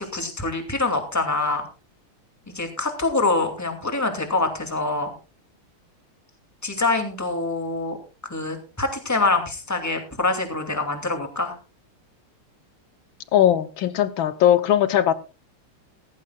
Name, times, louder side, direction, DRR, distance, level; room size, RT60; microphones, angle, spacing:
voice 1, 0.0-1.6 2.5-5.1 6.6-8.0 8.3-11.5, left 3 dB, 10° left, 5 dB, 2.4 m, -25 dB
voice 2, 13.3-15.1, left 11 dB, 70° left, 13 dB, 1.7 m, -19 dB
17.0 x 15.5 x 2.4 m, 0.31 s
omnidirectional pair, 2.4 m